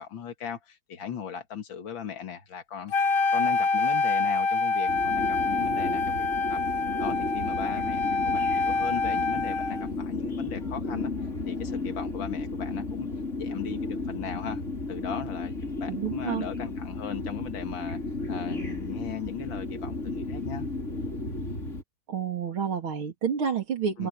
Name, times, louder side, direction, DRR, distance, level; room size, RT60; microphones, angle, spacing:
voice 1, 0.0-2.9 3.3-6.6 7.0-11.1 11.4-13.1 13.4-14.6 14.9-18.0 18.3-20.7 24.0-24.1, left 7 dB, 70° left, 2.7 m, -38 dB
Wind instrument woodwind instrument, 2.9-9.9, left 3 dB, 90° left, 2.3 m, -26 dB
sound 1, 4.9-21.8, left 3 dB, 35° left, 5.0 m, -33 dB
voice 2, 15.9-16.5 22.1-24.1, right 7 dB, 90° right, 3.9 m, -29 dB
omnidirectional pair, 2.2 m